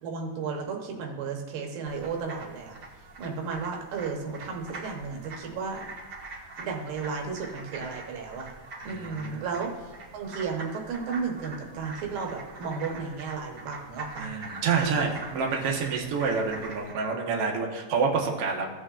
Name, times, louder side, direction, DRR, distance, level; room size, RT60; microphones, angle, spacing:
voice 1, 0.0-2.8 3.2-5.9 6.6-8.5 8.8-9.7 10.1-14.3 14.8-14.9, right 5 dB, 80° right, 1 dB, 2.8 m, -33 dB
sound 1, 1.8-16.9, right 3 dB, 40° right, 1.6 m, -44 dB
voice 2, 8.8-9.4 14.2-18.7, right 5 dB, 60° right, -1 dB, 1.7 m, -28 dB
16.5 x 8.2 x 2.5 m, 1.4 s
omnidirectional pair, 4.0 m